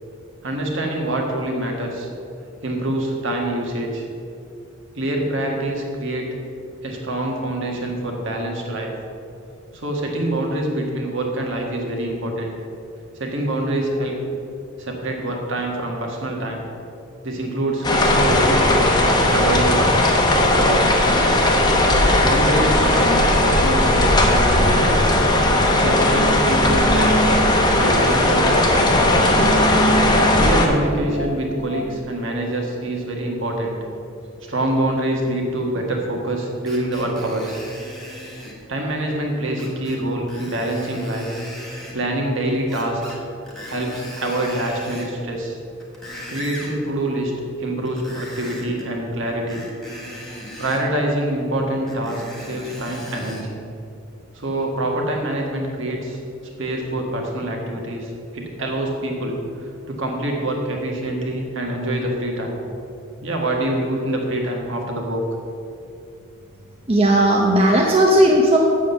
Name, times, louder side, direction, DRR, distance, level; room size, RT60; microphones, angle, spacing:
voice 1, 0.4-2.1 2.6-4.1 4.9-6.3 6.8-8.9 9.7-12.5 13.2-14.2 14.8-16.6 17.2-20.0 20.3-21.3 22.2-25.0 25.8-27.4 27.7-29.2 30.4-33.8 34.5-37.6 38.7-41.3 41.9-43.2 43.7-45.6 46.3-47.3 47.6-49.6 50.6-53.6 54.3-56.2 56.6-62.6 63.2-65.2, right 1 dB, 60° right, 0 dB, 1.7 m, -25 dB
sound 1, 17.8-30.7, left 1 dB, 20° left, 0.9 m, -17 dB
sound 2, 22.8-32.0, right 1 dB, 70° left, 1.1 m, -28 dB
Screech, 36.7-38.6 39.6-40.0 40.3-42.0 42.7-43.2 43.5-45.1 45.7-46.8 47.9-48.9 49.5-50.8 51.9-53.5 54.1-54.2, equal, ahead, 1.6 m, -38 dB
voice 2, 66.9-68.6, right 1 dB, 25° right, -1 dB, 0.7 m, -15 dB
7.6 x 7.5 x 7.0 m, 2.6 s
head